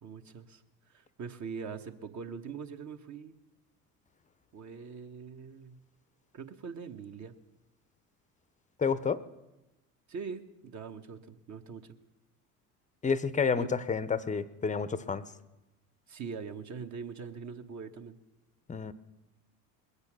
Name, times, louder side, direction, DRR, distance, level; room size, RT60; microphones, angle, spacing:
voice 1, 0.0-0.6 0.9-3.4 4.5-5.8 6.3-7.3 10.1-12.0 13.6-13.7 16.1-18.2, right 6 dB, 40° right, 6 dB, 1.3 m, -42 dB
voice 2, 8.8-9.2 13.0-15.2 18.7-18.9, left 5 dB, 15° left, 16 dB, 0.7 m, -29 dB
21.5 x 8.2 x 6.2 m, 1.0 s
hypercardioid pair, 70°, 46 cm